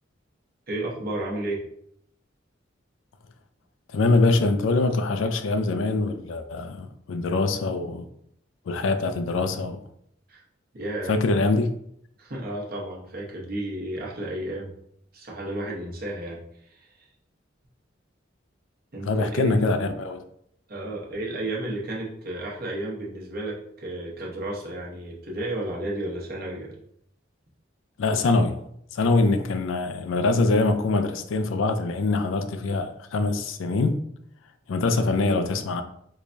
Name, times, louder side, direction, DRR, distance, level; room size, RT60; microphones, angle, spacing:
voice 1, 0.7-1.6 10.3-10.4 10.7-11.1 12.2-14.7 15.1-16.4 16.7-16.9 18.9-19.7 20.7-26.7, right 1 dB, 50° right, 0.9 m, -32 dB
voice 2, 3.9-8.0 8.7-9.8 11.1-11.7 19.0-20.2 28.0-28.6 28.9-34.0 34.7-35.8, left 3 dB, 80° left, 0.4 m, -23 dB
4.7 x 2.2 x 2.6 m
head